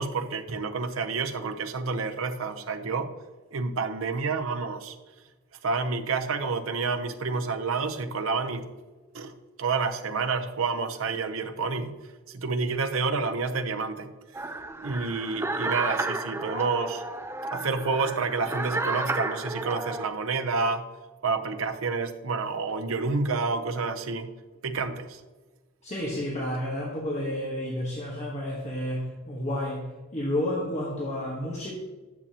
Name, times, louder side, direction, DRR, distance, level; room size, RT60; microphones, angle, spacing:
voice 1, 0.0-3.1 3.5-5.0 5.6-8.7 9.1-9.3 9.6-11.9 12.3-14.1 14.8-17.0 17.5-20.8 21.2-24.3 24.6-25.2, right 4 dB, 75° right, 7 dB, 0.7 m, -29 dB
sound 1, 14.3-20.1, right 2 dB, 10° right, 0.4 m, -32 dB
voice 2, 25.8-31.8, left 1 dB, 35° left, -4 dB, 1.3 m, -31 dB
9.7 x 6.8 x 2.9 m, 1.2 s
head